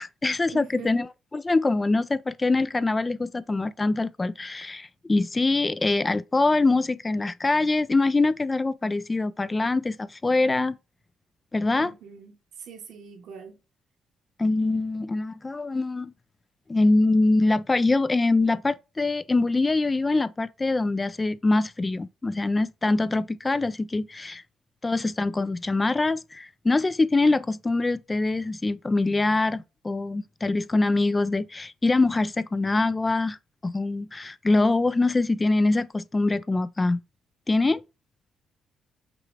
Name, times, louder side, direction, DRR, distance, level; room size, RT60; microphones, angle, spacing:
voice 1, 0.0-10.8 11.5-11.9 14.4-16.1 16.7-24.4 24.8-33.4 33.6-37.0 37.5-37.8, left 2 dB, 20° left, 0.3 m, -24 dB
voice 2, 0.5-0.9 11.7-12.3 12.6-13.6, right 6 dB, 80° right, 1.3 m, -42 dB
5.9 x 2.4 x 3.2 m
cardioid pair, 90°, 0 cm